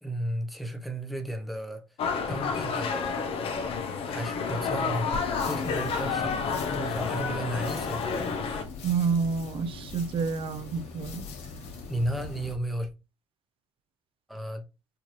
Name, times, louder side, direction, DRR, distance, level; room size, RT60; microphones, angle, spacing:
voice 1, 0.0-1.8 2.3-3.3 4.1-5.1 5.4-8.1 11.9-12.9 14.3-14.6, right 1 dB, ahead, 0.7 m, -33 dB
sound 1, 2.0-8.6, left 5 dB, 60° left, 0.6 m, -30 dB
sound 2, 5.1-12.5, left 4 dB, 75° left, 1.2 m, -41 dB
voice 2, 8.8-11.2, right 5 dB, 55° right, 0.5 m, -28 dB
4.5 x 2.6 x 3.0 m
cardioid pair, 85°, 11 cm